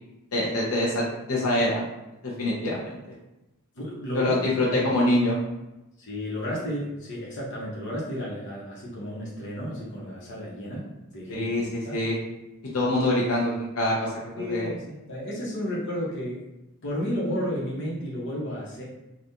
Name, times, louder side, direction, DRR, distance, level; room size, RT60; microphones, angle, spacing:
voice 1, 0.3-1.8 2.2-2.8 4.1-5.4 11.3-12.2 12.7-14.1 14.5-14.7, left 1 dB, 85° left, -5 dB, 0.7 m, -25 dB
voice 2, 3.7-4.4 4.7-4.9 6.0-12.0 14.3-16.5 16.8-18.9, equal, 55° left, -5 dB, 1.0 m, -32 dB
3.6 x 2.4 x 2.8 m, 0.95 s
head